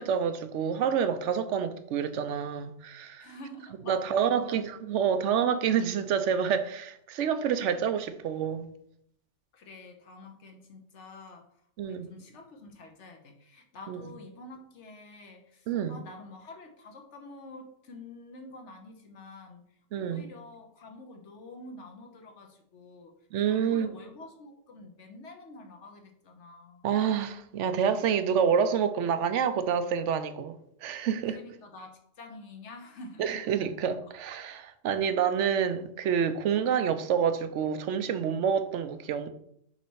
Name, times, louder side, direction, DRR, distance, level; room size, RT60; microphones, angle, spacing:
voice 1, 0.0-3.3 3.9-8.7 11.8-12.1 13.9-14.0 15.7-16.0 19.9-20.3 23.3-24.0 26.8-31.4 33.2-39.3, right 7 dB, 75° right, 0.9 m, -28 dB
voice 2, 3.2-4.6 9.5-11.5 11.8-19.6 20.0-23.1 23.5-26.9 31.2-33.4 34.0-34.1 35.1-35.3, left 2 dB, 65° left, 1.2 m, -48 dB
5.5 x 4.1 x 4.6 m
omnidirectional pair, 1.3 m